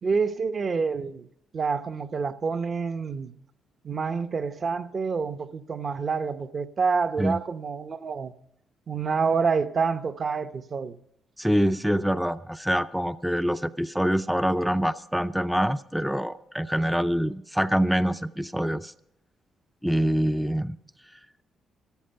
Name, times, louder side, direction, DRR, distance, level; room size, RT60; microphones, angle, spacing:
voice 1, 0.0-1.3 1.5-3.3 3.8-8.3 8.9-11.0, right 5 dB, 45° right, 0.8 m, -27 dB
voice 2, 11.4-18.9 19.8-20.8, equal, ahead, 0.4 m, -25 dB
13.0 x 13.0 x 5.7 m
cardioid pair, 90°, 0 cm